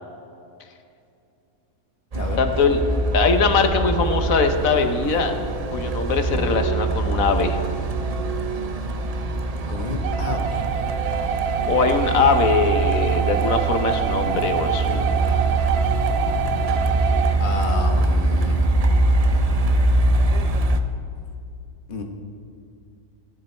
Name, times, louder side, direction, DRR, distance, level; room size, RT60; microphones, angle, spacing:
Truck, 2.1-20.8, right 2 dB, 45° right, 0.4 m, -23 dB
voice 1, 2.4-2.8 3.1-5.3 5.7-7.6 11.7-15.2, left 5 dB, 65° left, 7 dB, 1.3 m, -21 dB
voice 2, 9.7-10.6 17.4-18.6 21.9-22.0, left 2 dB, 35° left, 3 dB, 1.3 m, -30 dB
sound 1, 10.0-17.3, right 8 dB, 75° right, 1.1 m, -26 dB
17.0 x 10.5 x 4.4 m, 2.5 s
omnidirectional pair, 1.6 m